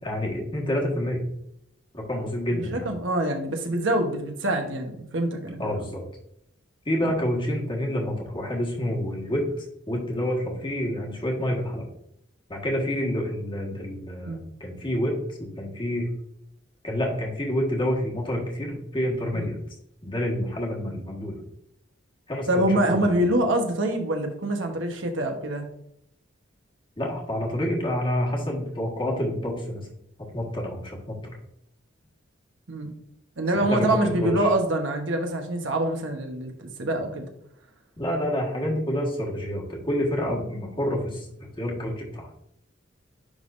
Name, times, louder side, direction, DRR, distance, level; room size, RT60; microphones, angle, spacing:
voice 1, 0.0-1.2 1.9-2.9 5.6-6.0 6.8-11.8 12.5-16.1 16.8-19.6 20.0-21.4 22.3-23.1 27.0-29.9 30.3-31.4 33.5-34.5 38.0-42.3, equal, 25° left, -1 dB, 1.5 m, -28 dB
voice 2, 2.5-5.7 14.3-14.4 19.3-19.5 22.5-25.6 32.7-32.9 33.4-37.3, right 1 dB, 75° right, 4 dB, 1.1 m, -25 dB
10.0 x 3.6 x 2.6 m, 0.73 s
head